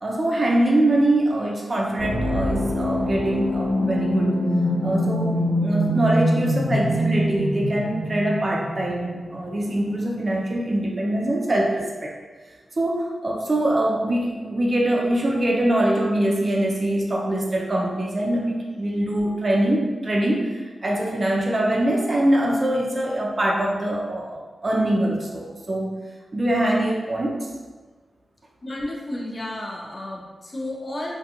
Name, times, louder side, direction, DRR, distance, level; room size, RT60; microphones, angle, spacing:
voice 1, 0.0-4.3 4.8-5.3 5.6-12.1 12.8-25.9 26.3-27.5, right 1 dB, 45° right, -2 dB, 0.5 m, -23 dB
sound 1, 2.0-9.7, equal, 90° left, 0.8 m, -24 dB
voice 2, 28.6-31.2, left 1 dB, 45° left, -2 dB, 0.6 m, -32 dB
2.4 x 2.2 x 2.8 m, 1.4 s
cardioid pair, 45°, 0 cm